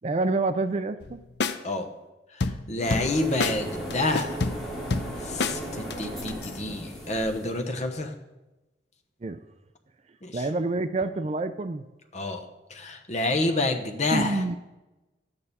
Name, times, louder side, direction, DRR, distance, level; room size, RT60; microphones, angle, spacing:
voice 1, 0.0-1.2 9.2-9.4 10.3-11.8 14.1-14.6, right 3 dB, 35° right, 11 dB, 0.4 m, -27 dB
sound 1, 1.0-1.1 1.4-1.6 2.4-3.1 3.4-3.6 3.9-5.6 5.9-6.5, left 4 dB, 60° left, 0.6 m, -28 dB
voice 2, 2.7-4.4 5.2-8.1 10.2-10.4 12.1-12.4 12.7-14.4, left 2 dB, 35° left, 5 dB, 1.0 m, -28 dB
sound 2, 2.8-7.6, right 1 dB, 5° left, 2.3 m, -36 dB
12.0 x 8.9 x 4.2 m, 1.0 s
head